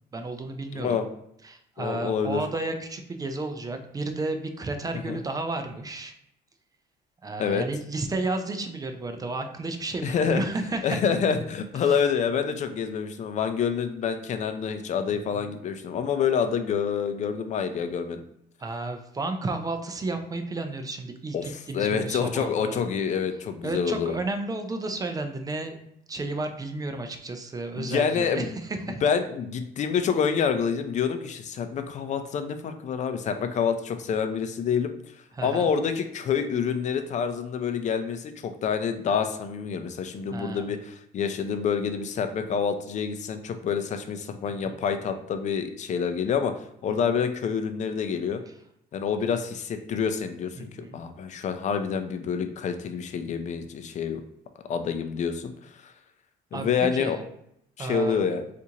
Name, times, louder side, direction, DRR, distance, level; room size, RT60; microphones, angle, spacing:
voice 1, 0.1-1.0 1.4-6.1 7.2-11.0 11.8-12.0 15.1-15.5 18.6-22.8 23.6-25.8 26.1-29.0 35.3-35.7 40.3-40.7 44.5-44.8 46.9-47.0 50.6-51.0 56.5-57.2 57.8-58.3, right 2 dB, 20° right, 6 dB, 0.4 m, -32 dB
voice 2, 0.7-1.1 1.8-2.4 5.1-5.2 7.4-7.6 10.0-10.4 10.8-18.2 21.3-21.4 21.7-24.2 27.8-28.6 29.0-34.9 35.4-48.4 48.9-54.2 54.7-55.5 55.8-55.9 56.5-57.2 57.8-58.4, left 6 dB, 45° left, 8 dB, 0.4 m, -27 dB
4.2 x 2.5 x 2.8 m, 0.76 s
cardioid pair, 110°, 17 cm